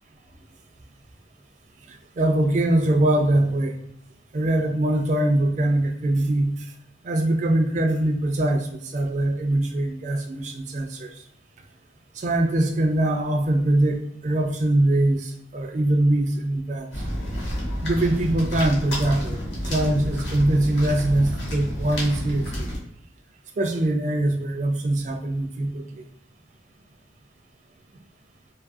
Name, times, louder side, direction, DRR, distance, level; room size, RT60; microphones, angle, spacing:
voice 1, 2.2-3.7 4.3-6.6 7.0-11.1 12.2-16.9 17.8-19.4 19.7-22.7 23.6-26.0, right 1 dB, 40° right, 4 dB, 0.3 m, -22 dB
sound 1, 16.9-22.8, equal, 80° left, 0.9 m, -30 dB
2.5 x 2.4 x 2.5 m, 0.75 s
head